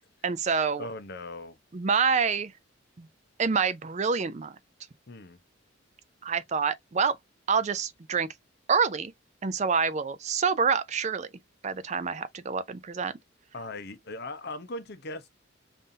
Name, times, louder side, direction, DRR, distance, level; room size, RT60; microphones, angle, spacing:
voice 1, 0.2-0.9 1.7-2.5 3.0-3.1 3.4-4.6 6.2-7.2 7.5-8.3 8.7-9.1 9.4-11.3 11.6-13.1, right 5 dB, 35° right, 0.4 m, -27 dB
voice 2, 0.8-1.6 5.1-5.4 13.5-15.3, left 2 dB, 50° left, 0.7 m, -39 dB
5.4 x 2.6 x 2.6 m
head